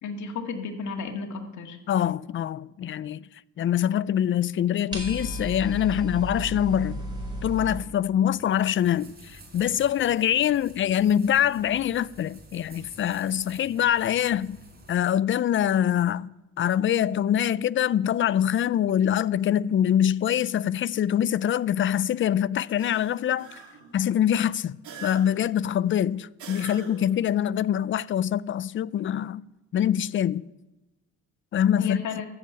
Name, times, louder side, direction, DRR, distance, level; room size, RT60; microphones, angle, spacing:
voice 1, 0.0-1.8 31.8-32.3, left 5 dB, 70° left, 2.1 m, -33 dB
voice 2, 1.9-3.3 3.6-7.0 7.4-14.6 14.9-23.6 23.9-29.4 29.7-30.5 31.5-32.0, left 10 dB, 40° left, 0.4 m, -24 dB
sound 1, 4.9-7.8, equal, 15° right, 5.1 m, -33 dB
sound 2, 8.4-15.0, right 1 dB, 30° right, 4.2 m, -50 dB
sound 3, 22.8-24.0 24.8-25.6 26.4-27.2, right 4 dB, 75° right, 3.4 m, -43 dB
14.5 x 7.5 x 8.8 m
cardioid pair, 90°, 30 cm